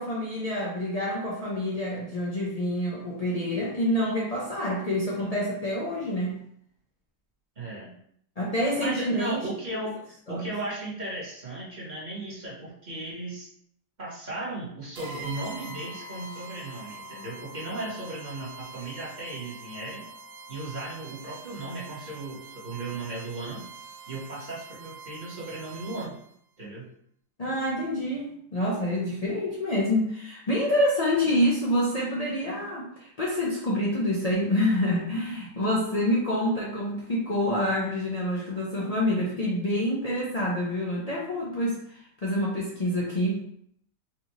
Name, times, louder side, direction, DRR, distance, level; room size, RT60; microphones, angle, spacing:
voice 1, 0.0-6.4 8.4-9.5 10.3-10.4 27.4-43.4, left 1 dB, 85° left, -6 dB, 0.3 m, -27 dB
voice 2, 7.6-7.9 8.8-13.5 14.0-20.0 20.5-23.7 24.1-26.2 26.6-26.9 31.2-31.4, right 2 dB, 30° right, -7 dB, 1.2 m, -36 dB
sound 1, 14.9-26.3, right 3 dB, 75° right, 1.4 m, -44 dB
4.5 x 2.5 x 3.0 m, 0.68 s
omnidirectional pair, 1.8 m